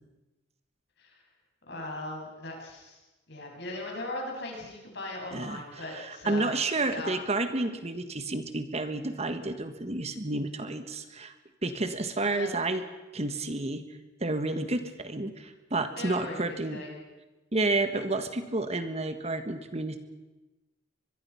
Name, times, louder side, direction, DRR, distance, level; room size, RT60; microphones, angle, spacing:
voice 1, 1.7-7.1 12.2-12.5 16.0-16.4 16.7-16.9, left 2 dB, 65° left, 0 dB, 7.4 m, -39 dB
voice 2, 5.3-5.6 5.9-11.3 11.6-12.8 13.1-13.8 14.2-16.8 17.5-20.0, right 2 dB, 35° right, 9 dB, 1.5 m, -30 dB
24.0 x 22.0 x 5.8 m, 1.1 s
head